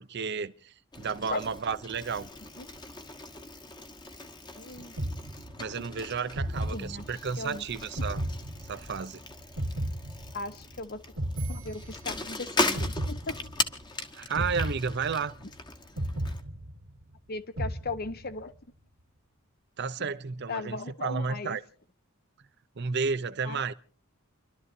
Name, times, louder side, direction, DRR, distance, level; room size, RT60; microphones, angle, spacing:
voice 1, 0.0-2.3 5.6-8.2 8.6-9.2 14.1-15.3 19.8-21.6 22.8-23.7, right 5 dB, 55° right, 0.7 m, -32 dB
Bicycle, 0.9-16.4, left 2 dB, 20° left, 1.2 m, -38 dB
voice 2, 4.6-4.9 6.7-7.0 7.4-7.6 10.3-11.0 11.5-13.4 14.4-14.5 17.3-18.5 20.5-21.6 23.4-23.7, left 3 dB, 50° left, 1.0 m, -37 dB
sound 1, 5.0-5.8 6.4-7.4 8.0-9.1 9.6-10.7 11.2-12.3 12.8-13.8 14.4-15.5 16.0-17.1 17.6-18.4, right 1 dB, 85° right, 1.9 m, -34 dB
30.0 x 12.5 x 2.7 m
head